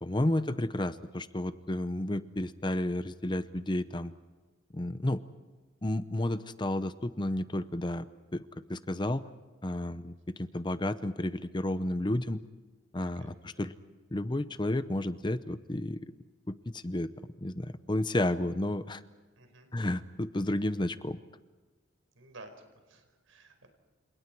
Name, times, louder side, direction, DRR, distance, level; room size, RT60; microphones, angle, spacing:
voice 1, 0.0-4.1 4.7-5.2 5.8-8.1 8.3-8.4 8.7-9.2 9.6-12.4 12.9-13.7 14.1-16.0 16.5-17.1 17.4-19.0 19.7-21.2, left 1 dB, 20° left, 13 dB, 0.7 m, -31 dB
voice 2, 13.2-13.6 19.4-19.7 22.1-22.5 22.9-23.7, right 2 dB, 80° right, 6 dB, 5.0 m, -53 dB
30.0 x 27.5 x 4.6 m, 1.3 s
head